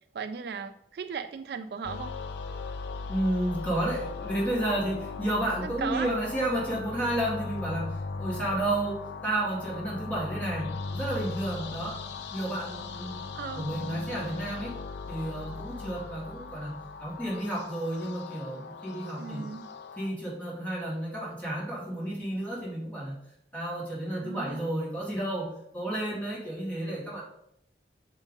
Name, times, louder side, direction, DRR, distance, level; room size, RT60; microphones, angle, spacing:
voice 1, 0.1-2.2 5.6-6.1 13.4-13.7 19.2-19.7 24.2-24.7, right 6 dB, 60° right, 10 dB, 0.3 m, -36 dB
sound 1, 1.8-20.1, left 4 dB, 75° left, 0.4 m, -38 dB
voice 2, 3.1-12.0 12.3-13.3 13.6-14.7 15.1-19.5 20.0-23.2 23.5-27.2, right 1 dB, 10° left, -6 dB, 2.2 m, -31 dB
6.2 x 3.8 x 5.2 m, 0.74 s
head